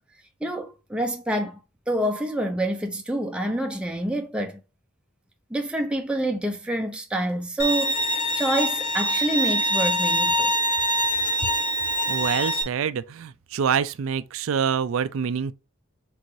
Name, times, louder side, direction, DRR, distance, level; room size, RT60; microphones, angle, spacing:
voice 1, 0.4-1.6 1.9-4.6 5.5-10.5, right 1 dB, 5° right, 0.5 m, -27 dB
Bowed string instrument, 7.6-12.6, equal, 35° left, 1.0 m, -24 dB
voice 2, 12.1-15.5, right 7 dB, 70° right, 0.4 m, -26 dB
4.6 x 3.8 x 2.6 m
head